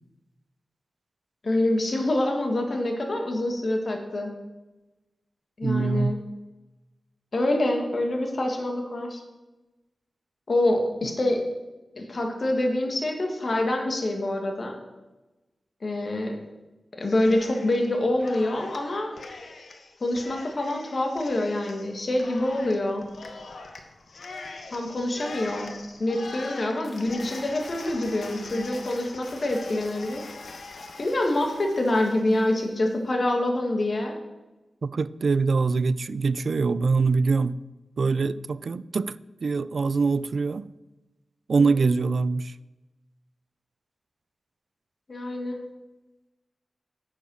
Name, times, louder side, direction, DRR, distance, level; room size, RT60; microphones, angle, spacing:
voice 1, 1.4-4.3 5.6-6.2 7.3-9.2 10.5-11.4 12.0-14.8 15.8-16.4 17.0-19.1 20.0-23.0 24.7-25.7 26.0-30.2 31.0-34.1 41.5-41.9 45.1-45.6, left 1 dB, 45° left, 3 dB, 1.8 m, -26 dB
voice 2, 5.6-6.1 34.8-37.5 38.0-40.7 41.5-42.5, right 4 dB, 65° right, 17 dB, 0.4 m, -24 dB
Cheering, 17.0-17.9 18.2-32.7, left 3 dB, 75° left, 1.3 m, -42 dB
10.5 x 7.0 x 6.2 m, 1.1 s
wide cardioid pair, 140°, 0 cm